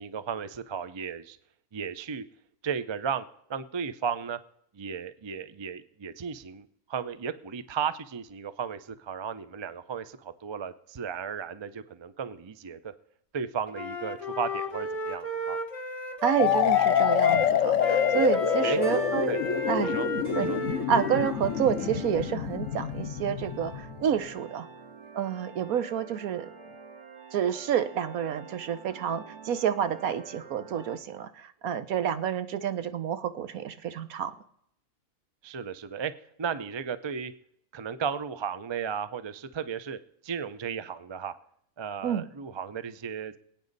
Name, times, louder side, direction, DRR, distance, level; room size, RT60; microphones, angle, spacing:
voice 1, 0.0-1.4 1.7-2.2 2.6-3.2 3.5-4.4 4.7-12.9 13.3-15.6 18.6-18.8 19.3-19.4 19.8-20.6 35.4-36.1 36.4-37.3 37.7-40.0 40.2-41.3 41.8-43.4, right 7 dB, 45° right, 13 dB, 0.3 m, -35 dB
Wind instrument woodwind instrument, 13.7-17.5 17.8-21.9, left 3 dB, 25° left, 1.5 m, -33 dB
voice 2, 16.2-19.3 19.7-19.9 20.4-20.5 20.9-24.7 25.1-26.5 27.3-34.3 42.0-42.2, right 9 dB, 80° right, 11 dB, 1.3 m, -29 dB
sound 1, 16.4-24.1, left 9 dB, 65° left, 1.1 m, -27 dB
sound 2, 16.4-31.0, right 2 dB, 20° right, 3.2 m, -45 dB
25.0 x 8.9 x 4.0 m, 0.72 s
omnidirectional pair, 1.5 m